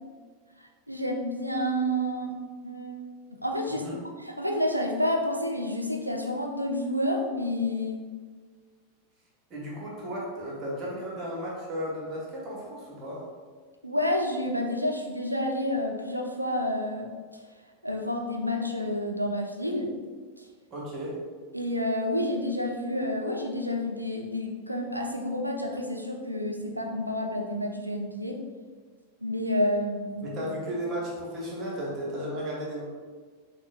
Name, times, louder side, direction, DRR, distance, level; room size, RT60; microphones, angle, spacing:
voice 1, 0.6-2.4 2.6-3.1 3.4-8.0 13.8-17.4 17.8-19.9 20.4-20.5 21.5-28.4 29.2-30.4, left 1 dB, 85° right, 2 dB, 0.4 m, -29 dB
voice 2, 9.5-13.2 20.7-21.2 30.2-32.8, equal, 30° right, -4 dB, 1.1 m, -34 dB
6.0 x 2.2 x 2.5 m, 1.5 s
figure-of-eight pair, 90°, 0 cm